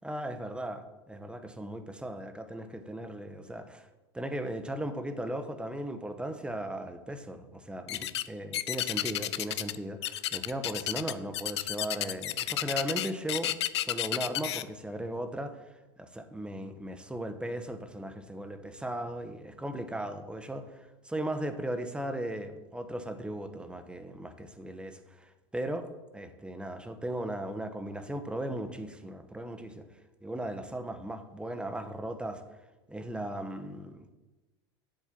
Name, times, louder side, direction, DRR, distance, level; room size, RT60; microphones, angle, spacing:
voice 1, 0.0-3.9 4.1-15.6 16.0-25.9 26.1-29.9 30.2-32.4 32.9-34.1, right 1 dB, 5° right, 8 dB, 1.2 m, -37 dB
sound 1, 7.9-8.3 8.5-9.8 10.0-14.6, left 13 dB, 80° left, 0.5 m, -31 dB
7.8 x 7.4 x 7.4 m, 1.1 s
hypercardioid pair, 85°, 14 cm